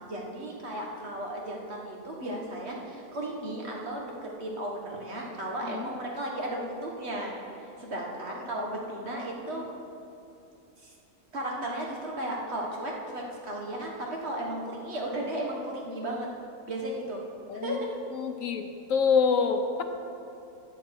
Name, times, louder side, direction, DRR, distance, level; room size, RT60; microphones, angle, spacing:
voice 1, 0.0-7.4 7.6-9.6 10.8-10.9 11.3-16.3 16.7-17.2 17.6-17.9, right 1 dB, 55° right, -2 dB, 1.9 m, -35 dB
voice 2, 17.5-17.8 18.1-19.8, left 5 dB, 80° left, 6 dB, 1.3 m, -27 dB
13.5 x 8.9 x 4.7 m, 2.6 s
omnidirectional pair, 1.4 m